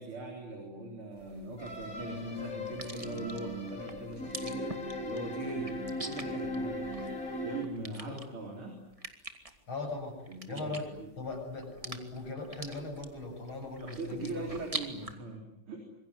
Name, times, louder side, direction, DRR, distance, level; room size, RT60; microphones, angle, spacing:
voice 1, 0.0-4.8 5.0-5.8 6.1-8.8 10.3-11.1 13.8-15.8, right 2 dB, 85° right, 2 dB, 4.7 m, -41 dB
sound 1, 1.2-15.1, right 2 dB, 15° right, 2.0 m, -46 dB
sound 2, 1.6-7.6, left 1 dB, 40° left, 5.0 m, -38 dB
voice 2, 7.9-8.2 9.7-10.2 10.5-14.5, left 3 dB, 70° left, 1 dB, 8.3 m, -39 dB
26.5 x 22.5 x 9.7 m, 0.87 s
omnidirectional pair, 2.3 m